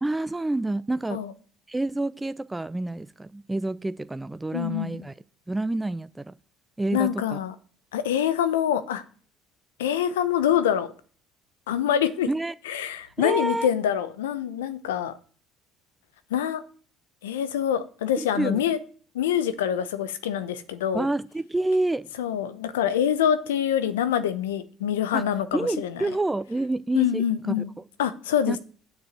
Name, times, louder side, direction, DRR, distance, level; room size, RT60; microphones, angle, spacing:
voice 1, 0.0-1.2 1.7-5.1 5.5-6.3 6.8-7.4 12.3-12.5 13.2-13.7 18.3-18.6 20.9-22.1 25.1-25.2 25.5-27.6 28.5-28.6, right 2 dB, 15° right, 0.5 m, -28 dB
voice 2, 4.5-5.0 6.9-7.5 7.9-9.0 9.8-10.9 11.7-12.3 12.6-15.1 16.3-16.6 17.2-18.8 19.1-21.1 22.2-26.0 26.9-27.7 28.0-28.6, left 9 dB, 85° left, 0.9 m, -25 dB
7.8 x 6.8 x 7.7 m
hypercardioid pair, 65°, 0 cm